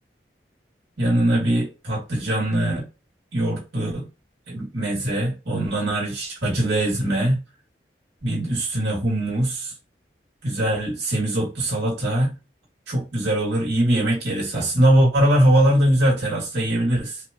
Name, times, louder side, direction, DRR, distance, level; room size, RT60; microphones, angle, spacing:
voice 1, 1.0-2.9 3.3-4.1 4.5-7.4 8.2-9.7 10.4-12.3 12.9-17.2, right 1 dB, 75° right, 2.1 m, -21 dB
4.8 x 2.4 x 2.9 m
head